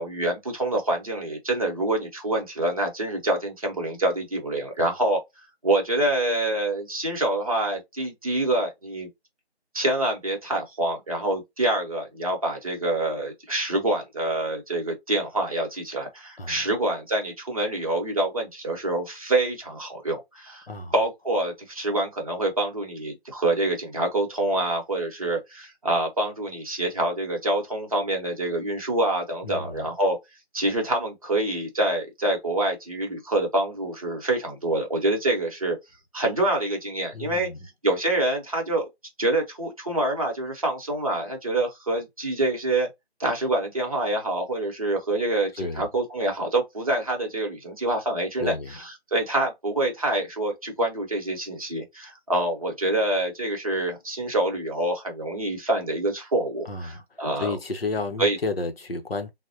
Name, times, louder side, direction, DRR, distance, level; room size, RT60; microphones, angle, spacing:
voice 1, 0.0-5.2 5.6-9.1 9.7-20.7 20.9-30.2 30.5-35.8 36.1-37.5 37.8-38.9 39.2-42.9 43.2-57.6 58.2-58.4, right 1 dB, 35° right, 0.9 m, -26 dB
voice 2, 16.4-16.7 20.7-20.9 29.4-29.9 37.1-37.6 45.5-45.9 48.4-48.7 56.7-57.0 57.4-59.3, left 3 dB, 65° left, 0.7 m, -31 dB
3.5 x 2.1 x 2.6 m
figure-of-eight pair, 160°, 32 cm